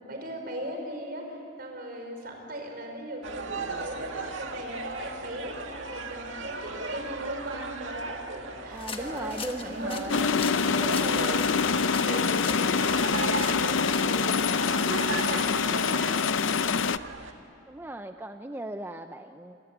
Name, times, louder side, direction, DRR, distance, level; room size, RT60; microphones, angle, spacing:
voice 1, 0.0-10.4 10.7-16.3, equal, 50° right, 3 dB, 5.2 m, -38 dB
sound 1, 3.2-17.3, right 3 dB, 70° right, 2.1 m, -37 dB
sound 2, 8.7-14.2, left 5 dB, 25° left, 1.5 m, -41 dB
voice 2, 8.7-11.6 17.7-19.6, right 1 dB, 10° right, 7 dB, 0.6 m, -38 dB
sound 3, 10.1-17.0, left 5 dB, 75° left, 0.6 m, -25 dB
28.0 x 24.0 x 8.9 m, 2.4 s
head